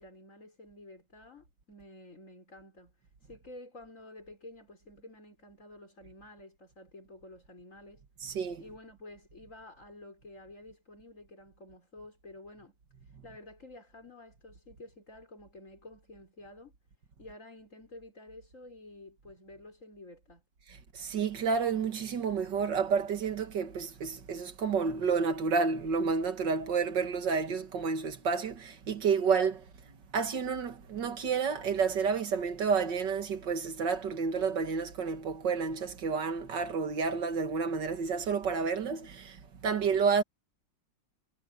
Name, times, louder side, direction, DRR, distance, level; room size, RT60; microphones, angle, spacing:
voice 1, 0.0-16.7 17.2-20.4, left 1 dB, 40° left, 5.5 m, -51 dB
voice 2, 8.2-8.6 20.9-29.6 30.1-40.2, right 5 dB, 65° right, 2.3 m, -30 dB
omnidirectional pair, 2.0 m